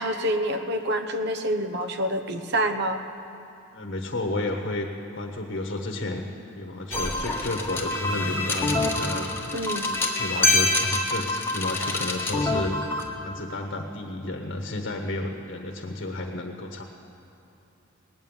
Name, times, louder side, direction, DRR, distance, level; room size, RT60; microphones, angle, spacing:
voice 1, 0.0-3.0 9.5-9.9, equal, 55° right, 7 dB, 1.0 m, -27 dB
voice 2, 3.7-6.3 6.6-9.3 9.9-12.8 13.1-16.8, left 2 dB, 55° left, 3 dB, 1.1 m, -31 dB
sound 1, 6.9-13.1, left 2 dB, 10° left, 1.4 m, -26 dB
19.0 x 9.4 x 7.2 m, 2.8 s
head